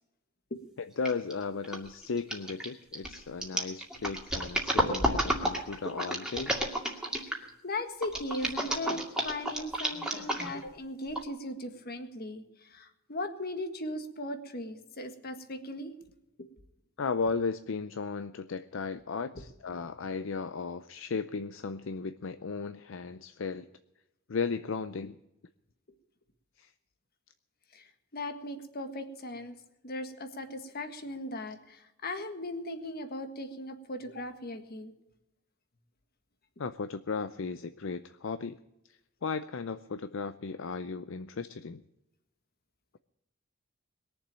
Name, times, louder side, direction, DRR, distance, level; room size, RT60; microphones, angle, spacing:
voice 1, 0.8-6.6 17.0-23.7 24.3-25.2 26.6-26.7 36.6-38.6 39.2-41.8, left 4 dB, 70° left, 12 dB, 0.6 m, -35 dB
sound 1, 1.0-1.3 1.6-7.5 8.0-10.7 11.1-11.2, right 1 dB, 5° right, 2.3 m, -31 dB
voice 2, 7.3-15.9 19.7-19.8 27.7-29.6 29.8-34.9, left 1 dB, 50° left, 7 dB, 1.7 m, -38 dB
21.0 x 7.2 x 8.8 m, 0.91 s
head